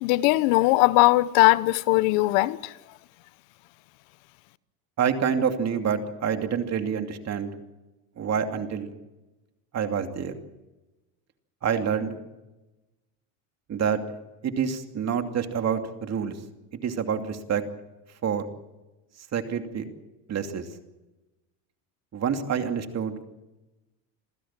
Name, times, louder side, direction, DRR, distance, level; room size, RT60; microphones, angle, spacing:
voice 1, 0.0-2.7, left 20 dB, 75° left, 0.9 m, -20 dB
voice 2, 5.0-7.5 8.2-8.9 9.7-10.3 11.6-12.2 13.7-14.0 14.4-16.3 16.8-17.6 18.2-18.5 19.3-19.8 20.3-20.7 22.1-23.1, right 7 dB, 40° right, 2.7 m, -27 dB
27.5 x 15.5 x 7.5 m
supercardioid pair, 115°, 41 cm